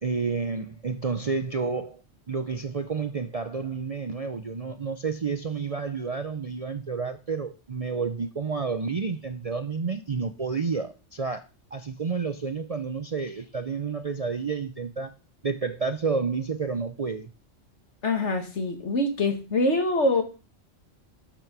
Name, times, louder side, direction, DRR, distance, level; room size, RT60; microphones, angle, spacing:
voice 1, 0.0-2.0 2.3-11.4 11.7-15.1 15.4-17.3, right 5 dB, 40° right, 0.6 m, -30 dB
voice 2, 18.0-20.2, left 2 dB, 60° left, 2.1 m, -24 dB
12.0 x 6.2 x 6.0 m
omnidirectional pair, 1.3 m